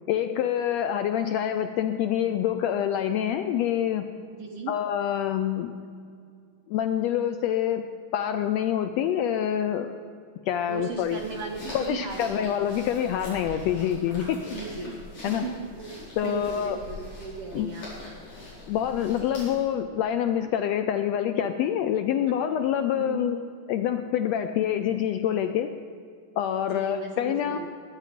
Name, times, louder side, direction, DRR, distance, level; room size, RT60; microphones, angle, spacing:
voice 1, 0.1-4.1 4.7-5.7 6.7-7.8 8.1-9.9 10.5-11.2 11.7-14.5 14.8-15.0 15.2-15.5 16.2-16.8 17.5-17.7 18.7-23.4 23.7-25.7 26.4-27.6, left 10 dB, 80° left, 8 dB, 1.6 m, -26 dB
voice 2, 4.4-4.7 10.7-12.8 14.5-15.1 15.4-17.9 23.0-23.3 26.7-27.6, right 5 dB, 65° right, 2 dB, 1.5 m, -37 dB
sound 1, 10.7-19.7, left 2 dB, 55° left, 5.5 m, -43 dB
21.0 x 9.0 x 5.0 m, 2.3 s
omnidirectional pair, 3.5 m